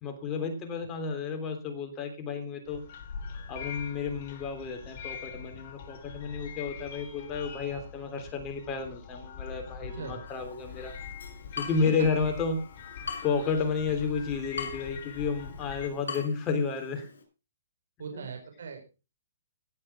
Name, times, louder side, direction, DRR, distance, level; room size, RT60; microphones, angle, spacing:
voice 1, 0.0-2.8 3.5-10.9 11.6-12.6 13.2-17.1 18.1-18.3, left 5 dB, 20° left, 5 dB, 3.4 m, -31 dB
sound 1, 2.7-15.9, left 6 dB, 40° left, 3.3 m, -43 dB
Water tap faucet / Drip, 10.3-17.2, left 5 dB, 85° left, 6.2 m, -43 dB
voice 2, 18.0-18.9, right 5 dB, 70° right, 4 dB, 4.6 m, -40 dB
17.5 x 7.7 x 4.6 m, 0.32 s
hypercardioid pair, 155°, 0 cm